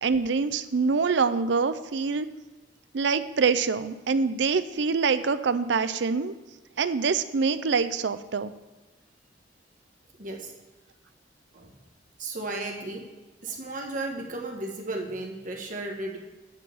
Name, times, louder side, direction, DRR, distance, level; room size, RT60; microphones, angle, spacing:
voice 1, 0.0-2.3 2.9-6.3 6.8-8.5, right 5 dB, 70° right, 13 dB, 0.5 m, -25 dB
voice 2, 10.2-10.5 11.5-11.7 12.2-13.1 13.4-16.2, right 2 dB, 45° right, 2 dB, 1.5 m, -34 dB
10.5 x 4.7 x 7.1 m, 1.2 s
head